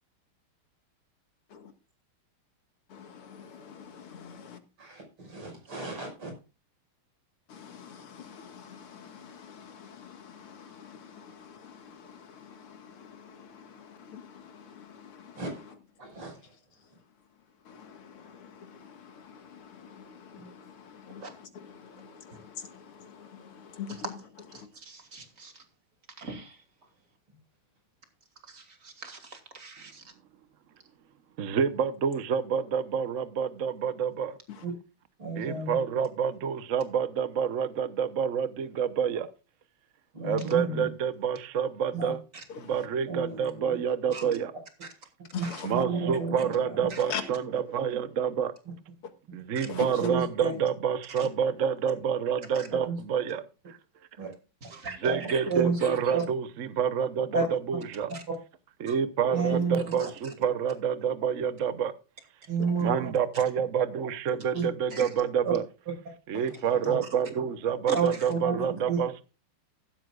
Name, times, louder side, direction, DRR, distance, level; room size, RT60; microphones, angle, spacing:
voice 1, 2.9-4.6 7.5-15.4 17.7-24.2 24.5-24.7 34.5-34.6 42.5-42.8 45.3-45.8 47.0-47.2 49.7-49.9 59.3-59.6 62.6-62.7 66.3-66.4, left 7 dB, 85° left, 2.7 m, -43 dB
voice 2, 4.8-6.3 15.4-15.6 16.0-16.4 34.6-34.7 35.2-35.7 40.1-40.9 41.9-42.1 43.1-43.8 45.4-46.9 50.0-50.5 52.8-53.0 54.2-54.3 55.0-55.8 56.1-56.2 57.3-57.4 59.3-59.9 62.5-63.1 64.5-64.7 65.4-65.5 66.8-66.9 67.9-69.0, right 4 dB, 85° right, 6.5 m, -31 dB
voice 3, 24.9-25.5 26.2-26.5 28.5-30.0 44.1-44.2 45.5-45.6 46.9-47.0 49.6-49.7 54.6-55.0 55.3-55.4 55.8-55.9 58.1-58.2 58.9-59.0 60.0-60.1 64.9-65.1 67.9-68.0, right 4 dB, 35° right, 2.8 m, -40 dB
voice 4, 31.4-34.4 35.4-39.3 40.2-42.2 42.6-44.5 45.6-48.5 49.3-53.7 55.0-58.1 58.8-61.9 62.8-65.6 66.3-69.2, right 7 dB, 55° right, 0.9 m, -28 dB
15.5 x 12.5 x 2.4 m
omnidirectional pair, 2.3 m